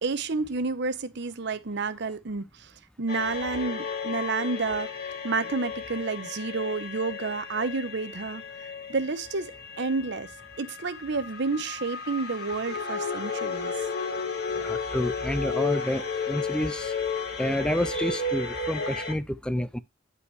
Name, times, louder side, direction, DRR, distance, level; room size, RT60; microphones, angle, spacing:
voice 1, 0.0-2.4 3.0-4.9 5.2-8.4 8.9-9.5 9.8-10.3 10.6-13.7, right 4 dB, 60° right, 0.8 m, -30 dB
sound 1, 3.1-19.1, left 4 dB, 55° left, 1.8 m, -33 dB
voice 2, 14.5-16.9 17.4-19.8, left 1 dB, 5° left, 0.4 m, -29 dB
10.0 x 5.4 x 3.2 m
head